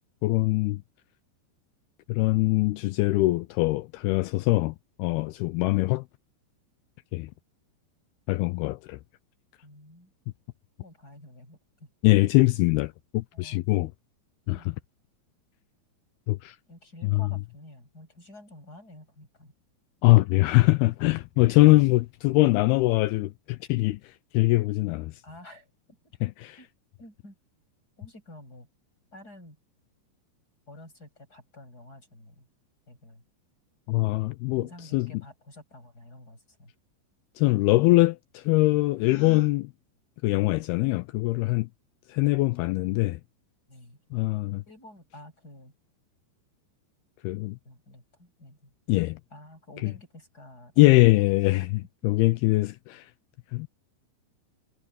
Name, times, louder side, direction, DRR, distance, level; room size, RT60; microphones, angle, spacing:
voice 1, 0.2-0.8 2.1-6.0 7.1-7.3 8.3-9.0 12.0-13.9 14.5-14.6 16.3-16.6 17.0-17.2 20.0-24.0 24.3-25.1 26.2-26.6 33.9-35.1 37.4-39.7 40.2-41.7 42.1-43.2 44.1-44.6 47.2-47.6 48.9-49.2 50.8-53.1 53.5-53.7, left 21 dB, 85° left, 2.2 m, -23 dB
voice 2, 9.6-10.1 10.8-11.9 12.2-12.3 13.3-13.8 14.5-14.7 16.7-19.5 25.2-26.0 26.6-26.7 27.0-27.4 28.0-28.7 29.1-29.6 30.7-32.5 32.9-33.2 34.5-36.7 43.7-44.0 44.7-45.7 47.6-48.7 49.3-51.2 51.6-52.1, left 1 dB, 20° left, 8.0 m, -50 dB
Gasp, 39.0-39.5, left 10 dB, 60° left, 6.3 m, -44 dB
omnidirectional pair, 5.1 m